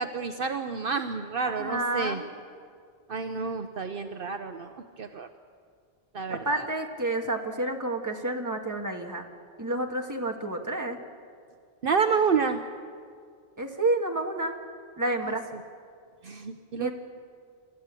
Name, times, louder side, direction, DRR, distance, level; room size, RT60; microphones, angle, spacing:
voice 1, 0.0-2.2 3.1-5.3 6.1-6.7 11.8-12.6 15.2-15.3 16.2-16.9, right 5 dB, 60° right, 7 dB, 1.0 m, -29 dB
voice 2, 1.4-2.3 6.3-9.3 9.6-11.0 13.6-14.6 15.0-15.5 16.8-16.9, right 2 dB, 15° right, 2 dB, 1.7 m, -29 dB
28.0 x 14.0 x 8.3 m, 2.2 s
omnidirectional pair, 1.1 m